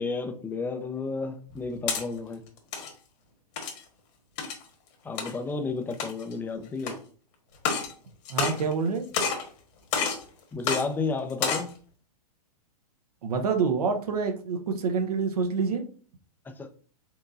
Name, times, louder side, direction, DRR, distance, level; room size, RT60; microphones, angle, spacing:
voice 1, 0.0-2.4 5.0-7.0 10.5-11.7 16.6-16.7, left 4 dB, 10° left, 7 dB, 0.5 m, -32 dB
sound 1, 1.5-2.0 2.6-2.9 3.6-3.8 4.4-4.6 5.2-5.3 5.9-6.3 6.8-6.9 7.5-7.9 8.2-8.9 9.1-9.5 9.9-10.2 10.6-10.8 11.3-11.7, left 6 dB, 45° left, 1.5 m, -28 dB
voice 2, 8.3-9.1 13.2-15.8, right 5 dB, 70° right, 5 dB, 1.0 m, -27 dB
4.6 x 3.7 x 2.6 m, 0.41 s
hypercardioid pair, 115°, 20 cm